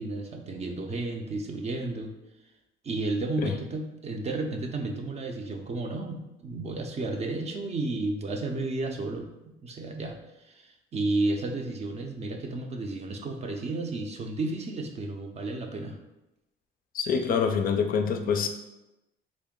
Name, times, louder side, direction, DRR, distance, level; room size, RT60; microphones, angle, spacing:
voice 1, 0.0-2.1 2.8-9.3 9.6-16.0, right 2 dB, 35° right, 4 dB, 0.5 m, -32 dB
voice 2, 16.9-18.5, left 6 dB, 50° left, 6 dB, 0.4 m, -25 dB
3.6 x 2.1 x 3.7 m, 0.96 s
cardioid pair, 90°, 19 cm